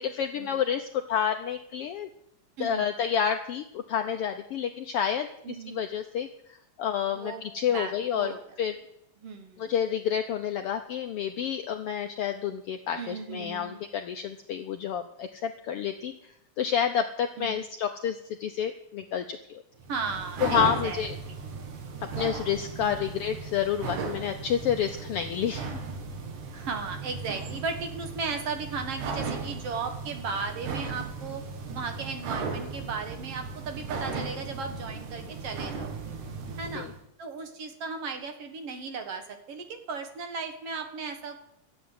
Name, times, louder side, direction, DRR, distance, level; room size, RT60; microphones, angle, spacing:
voice 1, 0.0-2.1 2.6-5.3 5.7-6.3 6.8-8.3 8.6-8.7 9.6-16.1 16.6-19.6 20.4-21.1 22.2-25.8 36.7-36.9, left 8 dB, 90° left, 7 dB, 1.3 m, -29 dB
voice 2, 2.6-2.9 5.4-5.8 7.1-8.4 9.2-9.7 13.0-13.8 17.4-17.7 19.9-21.3 22.8-23.0 26.5-31.4 31.7-36.0 36.6-36.9 37.2-41.4, right 4 dB, 55° right, 6 dB, 2.2 m, -36 dB
sound 1, 19.8-37.0, right 4 dB, 80° right, 3.1 m, -36 dB
13.0 x 8.1 x 9.5 m, 0.78 s
omnidirectional pair, 3.5 m